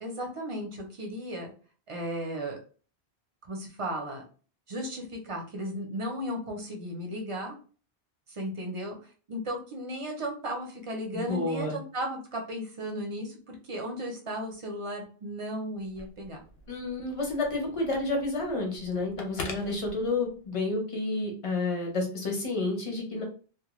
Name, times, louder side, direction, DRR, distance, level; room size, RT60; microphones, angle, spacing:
voice 1, 0.0-1.5 1.9-2.6 3.4-4.2 4.7-7.6 8.3-9.0 9.3-16.4, equal, 35° right, 0 dB, 0.6 m, -35 dB
voice 2, 11.1-11.8 16.7-23.2, left 2 dB, 35° left, 1 dB, 0.7 m, -30 dB
Telephone, 15.8-20.6, left 4 dB, 70° left, 0.8 m, -44 dB
2.2 x 2.1 x 2.9 m, 0.39 s
omnidirectional pair, 1.1 m